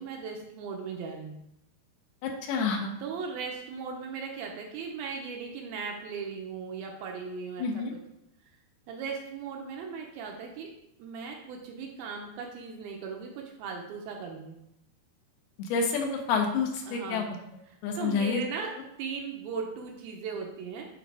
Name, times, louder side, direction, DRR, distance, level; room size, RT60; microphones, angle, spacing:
voice 1, 0.0-1.4 3.0-7.8 8.9-10.7 11.0-14.6 16.9-17.2 17.7-18.7 19.0-20.9, right 5 dB, 75° right, 1 dB, 2.4 m, -38 dB
voice 2, 2.2-2.9 7.6-7.9 15.6-17.3 17.8-18.4, left 5 dB, 75° left, 3 dB, 2.7 m, -28 dB
9.3 x 3.9 x 4.7 m, 0.80 s
omnidirectional pair, 4.7 m